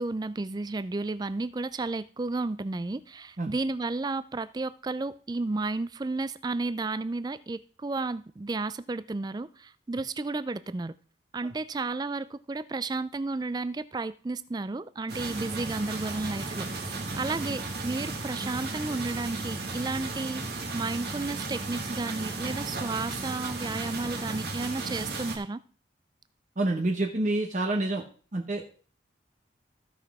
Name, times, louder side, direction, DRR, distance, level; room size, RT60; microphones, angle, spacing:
voice 1, 0.0-10.9 11.3-25.6, right 3 dB, 20° right, 15 dB, 0.3 m, -32 dB
sound 1, 15.1-25.4, right 3 dB, 60° right, 1.8 m, -35 dB
voice 2, 26.6-28.0 28.3-28.7, right 2 dB, 40° right, 1 dB, 0.9 m, -28 dB
15.0 x 5.9 x 3.6 m, 0.42 s
head